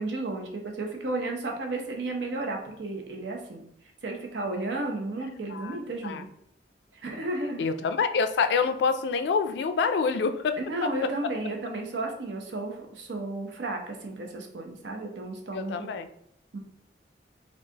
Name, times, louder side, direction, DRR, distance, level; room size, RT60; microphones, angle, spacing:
voice 1, 0.0-3.6 4.0-6.3 6.9-7.6 10.6-16.0 16.5-16.6, right 2 dB, 85° right, 2 dB, 0.7 m, -33 dB
voice 2, 7.6-10.6 15.5-16.1, left 5 dB, 75° left, 10 dB, 0.3 m, -26 dB
4.5 x 2.4 x 2.8 m, 0.72 s
head